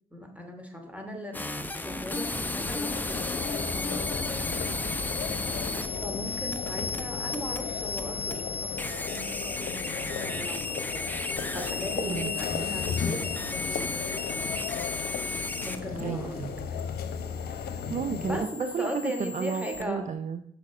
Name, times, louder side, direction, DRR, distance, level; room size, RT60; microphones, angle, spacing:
voice 1, 0.1-5.1 6.0-8.7 9.0-11.0 11.5-14.6 15.6-16.3 16.7-16.8 18.2-20.1, equal, 10° right, 3 dB, 2.7 m, -38 dB
sound 1, 1.3-19.8, left 3 dB, 10° left, 0.9 m, -34 dB
sound 2, 2.4-18.4, left 7 dB, 70° left, 0.9 m, -36 dB
voice 2, 12.0-12.7 16.0-16.7 17.9-18.5 18.7-20.5, right 6 dB, 50° right, 10 dB, 0.6 m, -33 dB
7.0 x 6.4 x 4.9 m, 0.70 s
hypercardioid pair, 50°, 17 cm